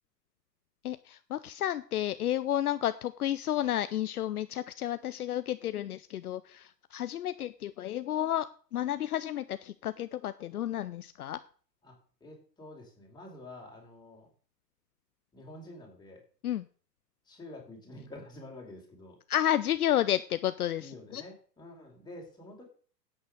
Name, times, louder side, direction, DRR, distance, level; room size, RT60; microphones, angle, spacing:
voice 1, 0.8-11.4 16.4-16.7 19.3-21.2, left 12 dB, 60° left, 13 dB, 0.7 m, -31 dB
voice 2, 11.8-14.3 15.3-16.2 17.3-19.2 20.8-22.6, left 1 dB, 10° left, -1 dB, 4.8 m, -48 dB
10.0 x 8.7 x 6.6 m, 0.43 s
figure-of-eight pair, 110°, 49 cm